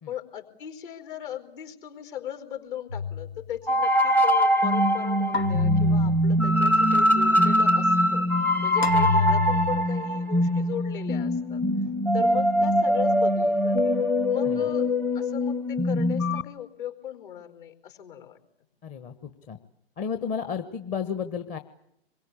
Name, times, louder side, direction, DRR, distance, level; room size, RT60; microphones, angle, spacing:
voice 1, 0.1-8.3 8.6-11.6 12.1-14.0 14.3-14.9 15.1-18.4, left 10 dB, 55° left, 7 dB, 4.7 m, -38 dB
sound 1, 2.9-3.6 5.3-6.6 8.8-9.9, left 6 dB, 75° left, 2.7 m, -27 dB
sound 2, 3.7-16.4, equal, 5° left, 0.9 m, -22 dB
voice 2, 18.8-19.6 20.0-21.6, left 6 dB, 25° left, 8 dB, 1.3 m, -33 dB
26.5 x 22.5 x 8.6 m, 0.78 s
figure-of-eight pair, 125°, 31 cm